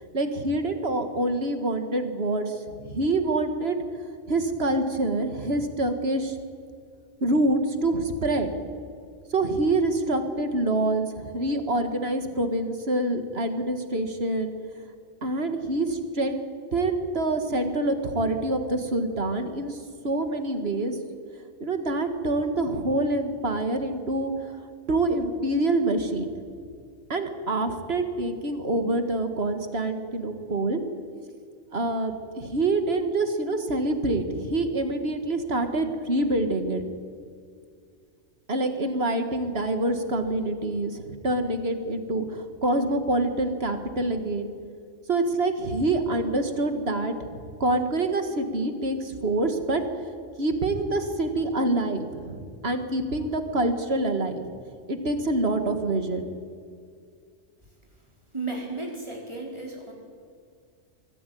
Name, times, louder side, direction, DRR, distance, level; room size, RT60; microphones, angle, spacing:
voice 1, 0.1-3.8 4.3-6.4 7.2-8.5 9.3-14.5 15.2-16.4 16.7-19.8 20.0-21.0 21.6-24.5 24.9-26.3 27.1-30.8 31.7-36.9 38.5-44.5 45.1-49.8 50.4-54.5 54.9-56.3, right 2 dB, 50° right, 7 dB, 2.0 m, -26 dB
voice 2, 58.3-59.9, right 3 dB, 20° right, -1 dB, 4.6 m, -34 dB
23.5 x 15.0 x 9.3 m, 2.3 s
omnidirectional pair, 1.3 m